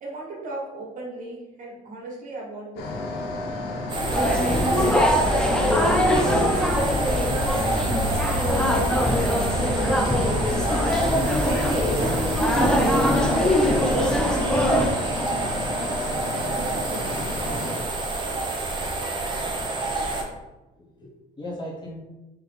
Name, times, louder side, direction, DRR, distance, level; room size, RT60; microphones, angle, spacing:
voice 1, 0.0-3.4 3.9-7.9 8.3-10.8 11.4-14.6 14.9-15.8 16.5-17.3, right 2 dB, 50° right, -3 dB, 1.2 m, -37 dB
sound 1, 2.8-17.8, left 2 dB, 85° left, 0.7 m, -32 dB
sound 2, 3.9-20.2, right 2 dB, 25° right, 0.8 m, -28 dB
sound 3, 4.1-14.9, left 1 dB, 5° left, 0.4 m, -23 dB
voice 2, 19.2-19.6 20.7-22.0, left 1 dB, 25° left, -3 dB, 1.0 m, -39 dB
3.9 x 2.9 x 3.3 m, 1.0 s
cardioid pair, 110°, 17 cm